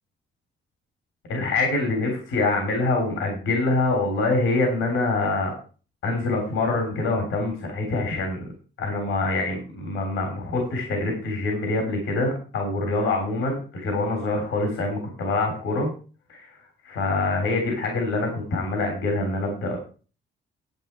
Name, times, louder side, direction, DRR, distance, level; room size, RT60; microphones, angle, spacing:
voice 1, 1.3-5.5 6.0-8.5 8.8-15.9 16.3-16.5 16.8-19.8, left 2 dB, 80° left, 3 dB, 3.5 m, -25 dB
10.5 x 7.8 x 4.5 m, 0.36 s
cardioid pair, 90°, 20 cm